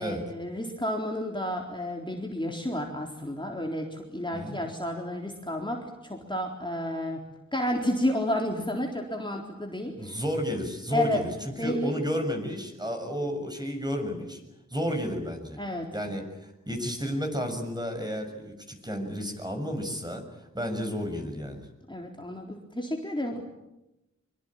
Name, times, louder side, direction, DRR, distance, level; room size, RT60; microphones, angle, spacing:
voice 1, 0.0-7.2 7.5-10.2 10.9-11.2 11.6-11.9 15.6-15.9 21.9-23.4, left 1 dB, 15° left, 1 dB, 3.9 m, -31 dB
voice 2, 9.9-14.4 14.7-15.6 15.9-21.7, equal, 15° right, 4 dB, 6.8 m, -32 dB
24.5 x 24.0 x 9.0 m, 0.93 s
wide cardioid pair, 50°, 30 cm